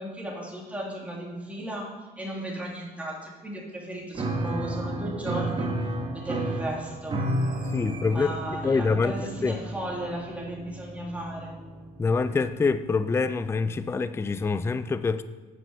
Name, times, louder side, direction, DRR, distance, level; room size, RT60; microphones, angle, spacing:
voice 1, 0.0-5.7 6.1-7.2 8.1-11.5, right 1 dB, 10° right, 2.9 m, -35 dB
Piano, 4.1-12.6, right 1 dB, 30° right, 1.3 m, -32 dB
voice 2, 7.7-8.3 8.6-9.2 9.4-9.5 12.0-15.2, left 4 dB, 15° left, 0.4 m, -25 dB
9.2 x 6.1 x 7.0 m
cardioid pair, 110°, 17 cm